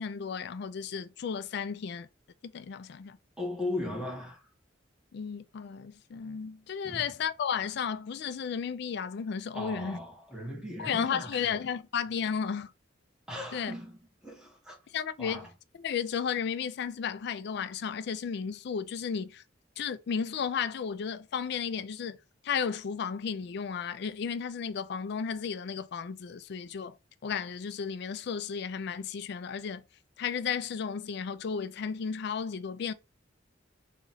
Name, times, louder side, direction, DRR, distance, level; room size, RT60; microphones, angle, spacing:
voice 1, 0.0-2.1 2.5-3.2 5.1-10.0 10.8-12.7 13.5-13.7 14.9-15.4 15.8-19.4 19.8-22.2 22.4-27.0 27.2-29.8 30.2-32.9, left 6 dB, 60° left, 0.4 m, -33 dB
voice 2, 3.4-4.5 6.8-7.1 9.5-11.5 13.3-14.8 15.2-15.5, left 1 dB, 5° right, 1.2 m, -38 dB
3.0 x 2.5 x 4.1 m
head